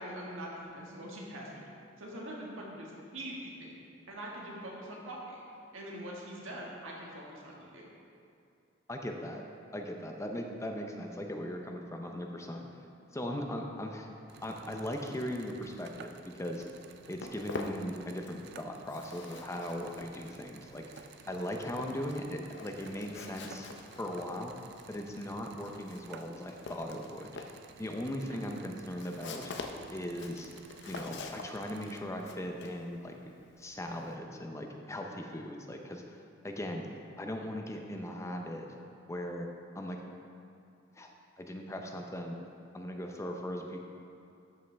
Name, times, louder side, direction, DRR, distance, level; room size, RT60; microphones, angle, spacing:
voice 1, 0.0-1.7 2.0-5.4 5.7-7.9 28.2-28.4, right 1 dB, 90° right, -3 dB, 1.7 m, -43 dB
voice 2, 8.9-9.4 9.7-12.7 13.1-14.1 14.4-16.6 17.1-20.8 21.3-23.7 24.0-24.5 24.9-27.3 27.8-29.5 29.9-30.5 30.8-33.2 33.6-36.0 36.4-36.9 37.2-38.7 39.1-39.5 39.7-40.0 41.0-41.1 41.4-42.4 42.7-43.8, left 1 dB, 15° left, 2 dB, 0.6 m, -38 dB
sound 1, 14.3-32.0, right 6 dB, 55° right, 0.4 m, -54 dB
Walk footsteps, 16.8-18.5 18.7-34.1, left 3 dB, 60° left, 0.6 m, -46 dB
12.5 x 5.5 x 3.4 m, 2.5 s
head